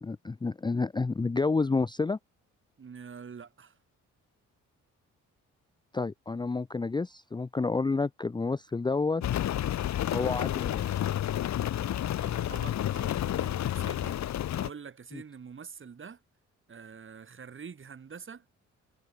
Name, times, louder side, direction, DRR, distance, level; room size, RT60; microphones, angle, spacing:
voice 1, 0.0-2.2 5.9-9.2 10.1-10.8 15.1-15.2, left 3 dB, 15° left, 0.6 m, -29 dB
voice 2, 2.8-3.8 11.7-16.2 16.7-18.5, right 6 dB, 40° right, 6.0 m, -46 dB
Rain, 9.2-14.7, left 12 dB, 65° left, 1.5 m, -30 dB
cardioid pair, 90°, 30 cm